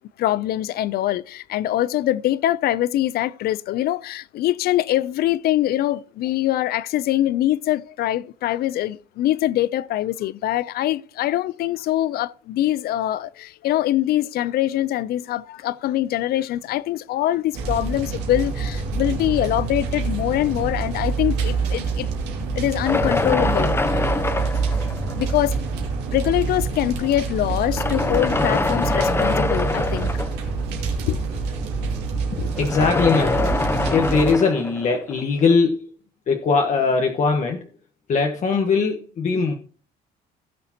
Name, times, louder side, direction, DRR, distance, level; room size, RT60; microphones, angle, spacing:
voice 1, 0.2-22.1 22.5-24.1 25.1-25.6 26.1-30.1 31.1-31.2 32.4-32.5, left 13 dB, 65° left, 0.5 m, -23 dB
sound 1, 17.5-34.3, right 4 dB, 85° right, 2.7 m, -26 dB
sound 2, 22.9-25.6 26.4-26.5 27.6-30.6 32.5-35.5, left 3 dB, 15° left, 1.0 m, -24 dB
voice 2, 32.3-33.6 33.9-35.9 36.3-37.6 38.1-39.5, left 4 dB, 45° left, 1.3 m, -20 dB
16.5 x 6.7 x 2.9 m
cardioid pair, 110°, 17 cm